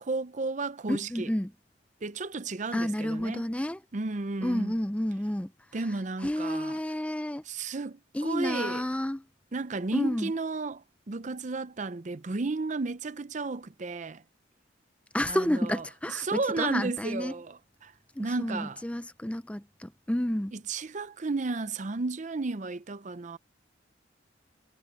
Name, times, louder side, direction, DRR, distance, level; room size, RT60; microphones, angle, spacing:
voice 1, 0.0-1.3 2.0-3.5 3.9-4.7 5.7-6.8 7.4-8.9 9.5-14.2 15.2-17.9 18.2-18.8 20.5-23.4, right 3 dB, 40° right, 0.6 m, -33 dB
voice 2, 0.9-1.5 2.7-3.8 4.4-5.5 6.2-7.4 8.1-9.2 9.9-10.3 15.1-17.3 18.2-20.5, left 1 dB, 5° left, 0.5 m, -30 dB
head